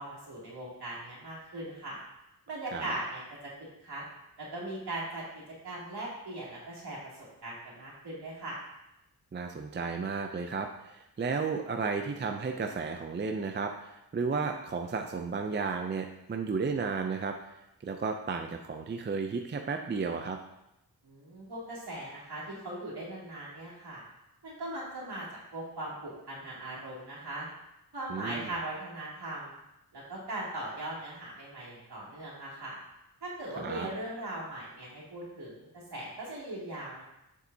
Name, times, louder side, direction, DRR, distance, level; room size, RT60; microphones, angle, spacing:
voice 1, 0.0-2.0 2.5-3.5 3.8-4.0 4.4-7.0 7.4-8.6 21.0-24.0 24.4-25.3 25.5-27.5 27.9-29.6 29.9-32.8 33.2-37.0, right 1 dB, 65° right, -6 dB, 2.7 m, -39 dB
voice 2, 9.3-17.6 17.8-20.4 28.1-28.5 33.6-33.9, right 5 dB, 30° right, 4 dB, 0.4 m, -33 dB
7.4 x 6.8 x 2.7 m, 0.87 s
wide cardioid pair, 125°, 41 cm